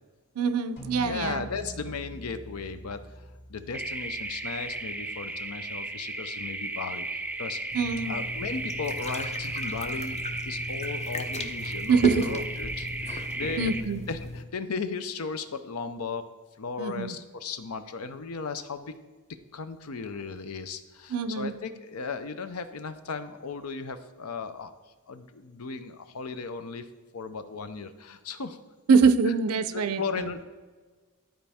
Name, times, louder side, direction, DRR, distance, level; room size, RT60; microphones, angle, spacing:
voice 1, 0.4-1.5 7.7-8.2 11.9-12.3 13.6-14.0 16.8-17.1 21.1-21.5 28.9-30.3, right 5 dB, 80° right, 12 dB, 0.5 m, -24 dB
sound 1, 0.8-5.4, equal, 55° left, 2.4 m, -44 dB
voice 2, 1.0-3.0 3.5-7.6 8.1-10.2 10.4-13.7 14.1-16.2 16.6-19.0 19.5-24.7 25.1-26.9 27.1-28.6 29.2-29.3 29.7-30.4, left 4 dB, 75° left, 10 dB, 0.6 m, -36 dB
sound 2, 3.7-13.8, right 2 dB, 5° right, 0.4 m, -35 dB
sound 3, 7.7-14.4, left 1 dB, 30° left, 0.6 m, -36 dB
12.5 x 4.4 x 3.5 m, 1.3 s
head